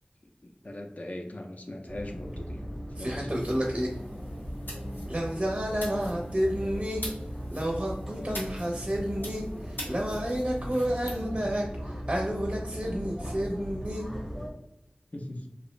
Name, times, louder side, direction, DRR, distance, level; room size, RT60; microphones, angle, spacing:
voice 1, 0.4-3.4 15.1-15.5, left 1 dB, 45° left, 3 dB, 0.4 m, -40 dB
sound 1, 1.9-14.5, equal, ahead, 0.7 m, -38 dB
voice 2, 3.0-3.9 5.1-7.0 7.5-14.1, equal, 30° right, -1 dB, 0.5 m, -30 dB
sound 2, 3.3-11.2, left 1 dB, 80° left, 0.7 m, -45 dB
2.5 x 2.0 x 3.1 m, 0.85 s
wide cardioid pair, 55°, 3 cm